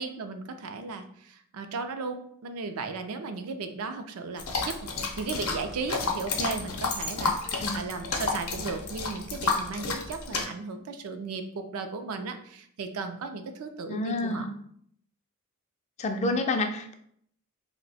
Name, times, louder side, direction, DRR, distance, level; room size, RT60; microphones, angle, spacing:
voice 1, 0.0-14.5, right 4 dB, 75° right, 7 dB, 0.4 m, -36 dB
sound 1, 4.4-10.4, left 4 dB, 75° left, 0.6 m, -31 dB
voice 2, 7.5-7.8 13.9-14.5 16.0-16.9, left 2 dB, 30° left, 6 dB, 0.3 m, -29 dB
2.6 x 2.1 x 4.0 m, 0.66 s
head